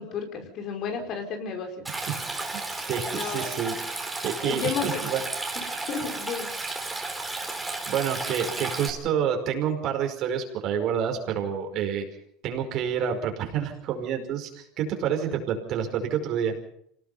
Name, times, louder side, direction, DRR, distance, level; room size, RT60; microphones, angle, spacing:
voice 1, 0.0-1.9 3.1-3.5 4.4-5.1 5.5-6.5, left 6 dB, 50° left, 4 dB, 5.2 m, -32 dB
Stream, 1.8-8.9, right 2 dB, 10° right, 4.4 m, -33 dB
voice 2, 2.5-3.7 4.2-5.2 7.9-12.1 12.4-16.5, right 8 dB, 55° right, 4 dB, 5.2 m, -28 dB
27.0 x 18.5 x 5.8 m, 0.69 s
supercardioid pair, 125°, 0 cm